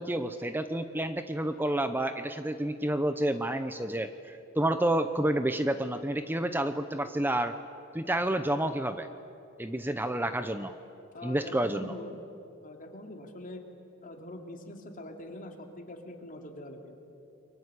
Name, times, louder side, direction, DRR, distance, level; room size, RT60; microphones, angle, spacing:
voice 1, 0.0-7.5 7.9-9.1 9.6-10.7 11.2-11.9, right 1 dB, 10° right, 9 dB, 0.7 m, -29 dB
voice 2, 11.1-12.2 12.6-13.6 14.0-16.9, left 1 dB, 40° left, 3 dB, 3.2 m, -43 dB
30.0 x 23.5 x 8.3 m, 2.8 s
head